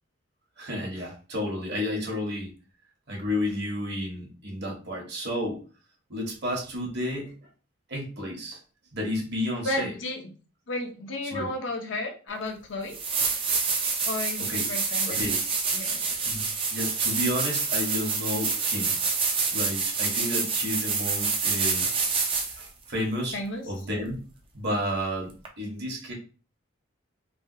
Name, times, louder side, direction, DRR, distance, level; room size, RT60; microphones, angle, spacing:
voice 1, 0.6-2.5 3.1-5.6 6.1-7.3 7.9-8.6 8.9-9.9 11.2-11.5 14.4-14.7 15.1-15.4 16.2-16.4 16.7-19.0 19.5-21.9 22.6-23.4 23.6-24.2 24.5-26.1, left 1 dB, 55° right, 1 dB, 1.1 m, -31 dB
voice 2, 9.6-10.3 10.7-13.0 14.1-15.4 15.7-16.1 23.3-23.7, left 2 dB, 65° left, 3 dB, 0.6 m, -33 dB
sound 1, 12.4-12.5 12.9-22.7 25.4-25.5, right 4 dB, 25° right, 0.4 m, -27 dB
3.3 x 2.2 x 2.6 m, 0.36 s
head